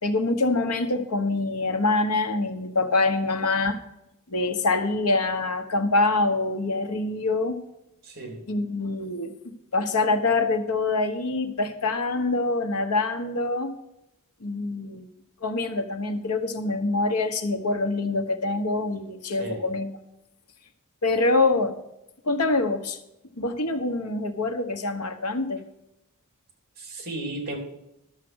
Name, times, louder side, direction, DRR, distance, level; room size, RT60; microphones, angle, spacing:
voice 1, 0.0-3.8 4.3-7.6 8.5-9.3 9.7-13.7 14.4-15.1 15.4-19.9 21.0-21.8 22.3-23.0 23.4-25.6, left 3 dB, 85° left, 7 dB, 1.2 m, -25 dB
voice 2, 8.0-8.4 19.4-19.6 26.8-27.6, right 2 dB, 45° right, 2 dB, 3.4 m, -34 dB
12.5 x 7.4 x 6.3 m, 0.87 s
head